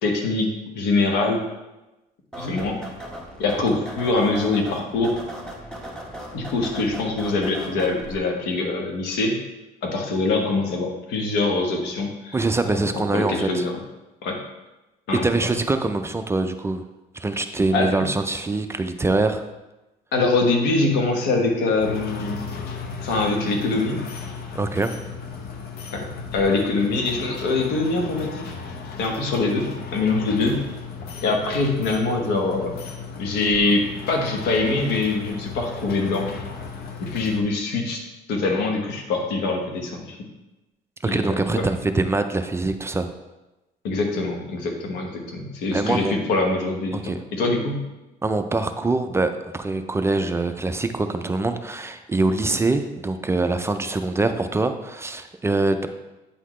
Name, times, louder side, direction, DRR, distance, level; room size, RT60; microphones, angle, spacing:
voice 1, 0.0-0.5 0.7-1.4 2.4-2.8 3.4-5.2 6.3-9.4 9.8-12.4 12.9-13.8 14.2-14.4 15.1-15.5 17.7-18.1 20.1-22.4 23.0-24.0 25.9-26.1 26.3-28.4 29.0-30.6 31.2-32.7 33.2-36.3 37.0-38.0 38.3-40.2 41.0-41.6 43.8-47.8, left 3 dB, 90° left, 2 dB, 1.2 m, -23 dB
sound 1, 2.3-8.2, right 1 dB, 5° left, 1.1 m, -37 dB
voice 2, 12.3-13.7 15.2-16.8 17.1-19.4 24.5-24.9 41.0-43.1 45.7-46.1 46.9-47.2 48.2-55.9, right 2 dB, 15° right, 8 dB, 0.3 m, -24 dB
sound 2, 21.8-37.4, left 5 dB, 70° left, 0.8 m, -35 dB
8.3 x 4.0 x 3.1 m, 1.0 s
cardioid pair, 110°, 17 cm